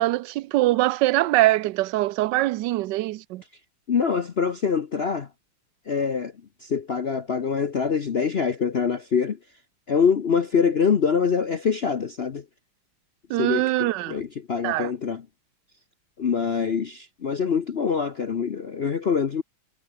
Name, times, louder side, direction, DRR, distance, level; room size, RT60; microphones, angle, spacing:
voice 1, 0.0-3.4 13.3-14.2 14.6-14.9, right 17 dB, 75° right, 1.1 m, -23 dB
voice 2, 3.9-5.3 5.9-6.3 6.6-9.4 9.9-12.4 13.4-15.2 16.2-19.4, left 6 dB, 60° left, 0.6 m, -24 dB
omnidirectional pair, 2.3 m